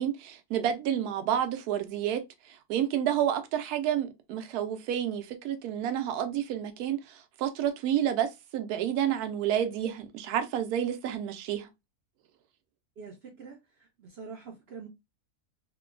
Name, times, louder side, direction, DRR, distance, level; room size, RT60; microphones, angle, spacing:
voice 1, 0.0-11.7, right 10 dB, 85° right, 1.1 m, -30 dB
voice 2, 13.0-14.9, right 5 dB, 60° right, 0.7 m, -45 dB
3.0 x 2.2 x 2.3 m
omnidirectional pair, 1.6 m